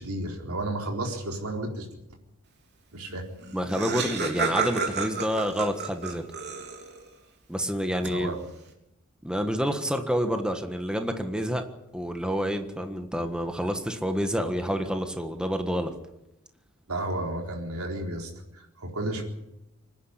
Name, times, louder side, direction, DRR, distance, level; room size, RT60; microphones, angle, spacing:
voice 1, 0.0-1.9 2.9-3.2 8.0-8.4 16.9-19.2, right 1 dB, 75° right, 1 dB, 4.2 m, -32 dB
Laughter, 3.1-3.2 3.4-7.1, right 4 dB, 50° right, 3.4 m, -31 dB
voice 2, 3.5-6.2 7.5-8.4 9.2-11.6 11.9-15.9, equal, 5° right, 6 dB, 1.5 m, -28 dB
25.0 x 10.5 x 9.9 m, 0.90 s
head